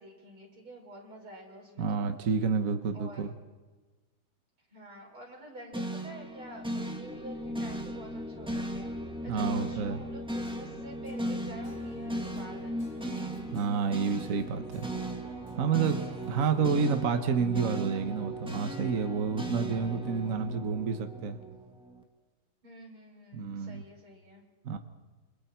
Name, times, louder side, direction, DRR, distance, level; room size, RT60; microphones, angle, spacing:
voice 1, 0.0-2.1 2.9-3.2 4.7-12.9 22.6-24.4, right 1 dB, 85° right, -2 dB, 6.7 m, -48 dB
voice 2, 1.8-3.3 9.3-10.0 13.5-14.9 15.6-16.0 16.3-21.4 23.3-23.8 24.6-24.8, right 5 dB, 45° right, 7 dB, 1.4 m, -29 dB
sound 1, 5.7-22.0, right 1 dB, 5° right, 1.6 m, -37 dB
sound 2, 10.4-16.6, equal, 45° left, 4.1 m, -56 dB
29.0 x 27.0 x 4.6 m, 1.3 s
omnidirectional pair, 2.3 m